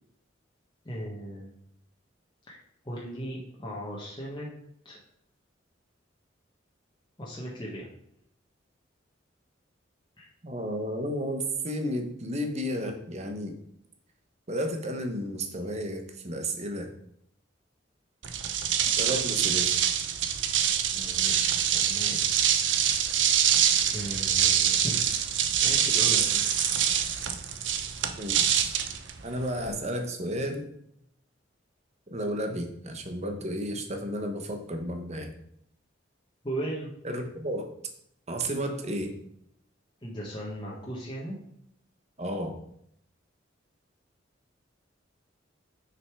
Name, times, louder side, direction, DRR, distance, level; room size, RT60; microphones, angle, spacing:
voice 1, 0.8-1.5 2.5-2.6 2.8-4.5 4.8-5.0 7.2-7.9 10.2-10.3 20.9-22.2 23.9-25.0 25.6-26.7 26.9-27.3 36.4-36.9 40.0-41.3, right 1 dB, 25° left, -5 dB, 1.4 m, -37 dB
voice 2, 10.4-13.5 14.5-16.9 19.0-19.8 28.2-28.7 29.2-30.7 32.1-35.3 37.0-37.7 38.3-39.2 42.2-42.6, equal, 35° right, 5 dB, 1.2 m, -32 dB
sound 1, 18.2-29.7, right 9 dB, 70° right, 0.8 m, -25 dB
6.6 x 5.6 x 4.7 m, 0.73 s
head